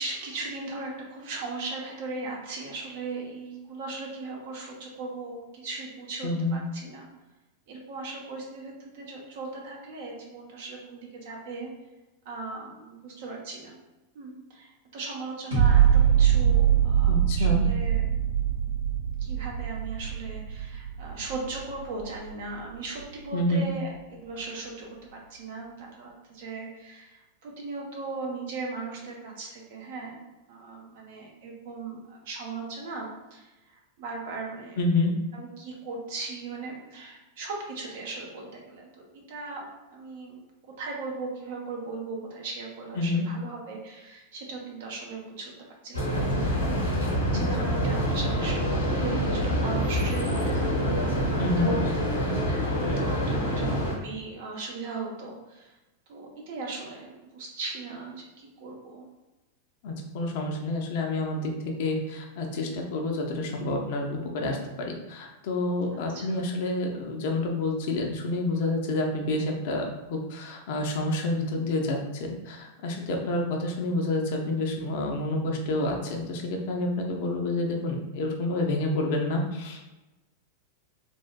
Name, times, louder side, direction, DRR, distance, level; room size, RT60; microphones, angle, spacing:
voice 1, 0.0-7.1 7.7-11.7 12.2-13.8 14.1-18.1 19.2-30.2 30.5-34.8 35.3-40.4 40.7-45.5 45.8-46.7 47.0-51.8 53.3-55.7 56.1-59.0 66.1-66.4, right 3 dB, 55° right, -1 dB, 0.7 m, -38 dB
voice 2, 6.2-6.6 17.1-17.6 23.3-23.7 34.8-35.1 43.0-43.3 47.6-47.7 51.4-51.7 59.8-61.5 61.8-69.8 70.1-79.9, left 2 dB, 50° left, 1 dB, 0.5 m, -28 dB
sound 1, 15.5-22.6 23.0-23.1, right 9 dB, 70° right, 1.4 m, -23 dB
sound 2, 45.9-53.9, equal, 75° left, 0.8 m, -26 dB
3.3 x 2.5 x 2.2 m, 1.1 s
figure-of-eight pair, 90°, 0 cm